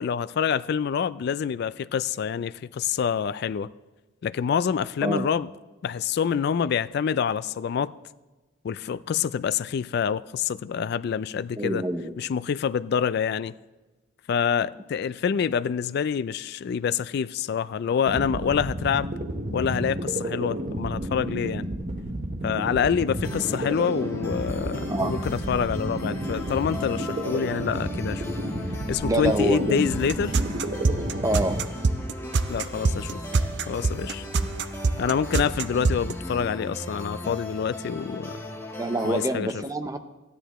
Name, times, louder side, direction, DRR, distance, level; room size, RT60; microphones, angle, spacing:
voice 1, 0.0-3.7 4.2-5.5 5.8-7.9 8.6-11.8 12.2-13.5 14.3-19.1 19.5-21.7 22.4-28.2 28.9-30.4 32.5-33.2 33.7-34.3 35.0-38.4 39.0-39.5, left 7 dB, 55° left, 0.3 m, -26 dB
voice 2, 11.5-12.2 24.9-25.2 29.0-29.9 31.2-31.7 34.4-34.5 34.9-35.1 38.8-40.0, right 1 dB, 15° right, 0.6 m, -27 dB
sound 1, 18.0-31.6, right 1 dB, 45° right, 1.0 m, -31 dB
sound 2, 23.2-39.2, left 1 dB, 15° left, 1.5 m, -38 dB
sound 3, 29.9-36.1, right 3 dB, 60° right, 0.5 m, -25 dB
14.5 x 10.0 x 3.0 m
head